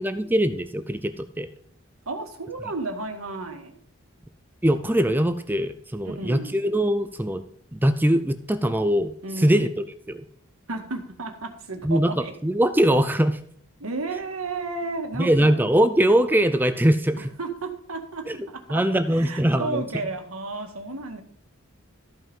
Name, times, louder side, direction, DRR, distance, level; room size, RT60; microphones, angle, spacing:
voice 1, 0.0-1.5 4.6-7.4 7.7-10.2 11.8-12.1 12.4-13.4 15.2-17.3 18.3-18.4 18.7-19.8, right 1 dB, 10° right, 10 dB, 0.5 m, -22 dB
voice 2, 2.0-3.7 6.0-6.6 9.2-9.6 10.7-12.3 13.8-15.6 17.2-21.2, right 3 dB, 85° right, 4 dB, 1.8 m, -33 dB
13.5 x 5.7 x 5.4 m, 0.63 s
head